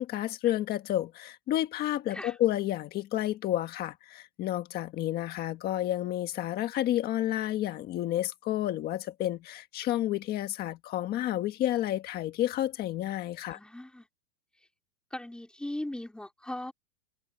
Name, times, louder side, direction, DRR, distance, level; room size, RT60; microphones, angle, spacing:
voice 1, 0.0-13.6, left 13 dB, 20° left, 1.5 m, -30 dB
voice 2, 13.5-14.1 15.1-16.7, left 1 dB, ahead, 4.1 m, -38 dB
supercardioid pair, 170°, 48 cm